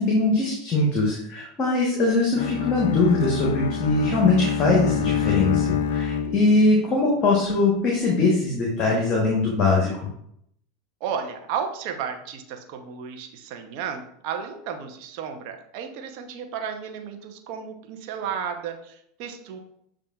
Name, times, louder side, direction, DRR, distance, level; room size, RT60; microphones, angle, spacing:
voice 1, 0.0-9.9, left 3 dB, 40° left, -2 dB, 1.0 m, -21 dB
Bowed string instrument, 2.4-6.8, left 7 dB, 75° left, 0.3 m, -26 dB
voice 2, 6.5-6.9 11.0-19.6, right 7 dB, 55° right, 4 dB, 0.7 m, -33 dB
6.9 x 2.5 x 2.3 m, 0.72 s
hypercardioid pair, 90°, 0 cm